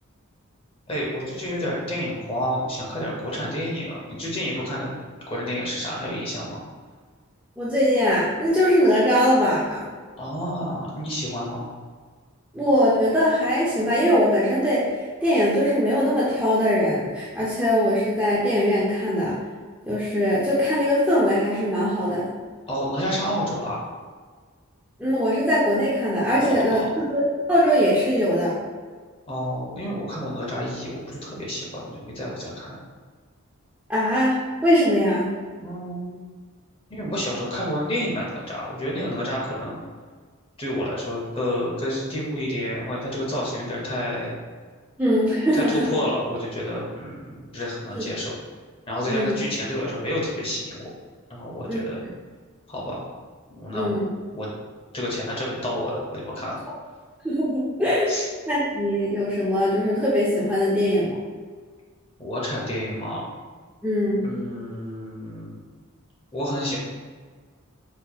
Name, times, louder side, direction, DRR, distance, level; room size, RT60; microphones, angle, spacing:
voice 1, 0.9-4.9 5.3-6.6 10.2-11.7 22.7-23.8 26.3-26.8 29.3-32.7 35.6-36.2 36.9-39.8 40.6-44.3 45.5-48.3 48.9-50.9 51.3-52.0 52.7-53.0 53.5-54.0 54.3-54.5 54.9-56.6 58.1-58.2 62.2-63.2 64.2-65.6 66.3-66.8, equal, 25° left, -4 dB, 0.7 m, -29 dB
voice 2, 7.6-9.8 12.5-19.4 19.9-22.3 25.0-27.2 27.5-28.6 33.9-35.3 45.0-45.9 47.9-48.0 49.1-49.3 51.7-51.8 53.7-54.1 57.2-58.1 58.5-61.2 63.8-64.3, equal, 5° right, -8 dB, 0.4 m, -21 dB
4.2 x 2.9 x 2.3 m, 1.6 s
head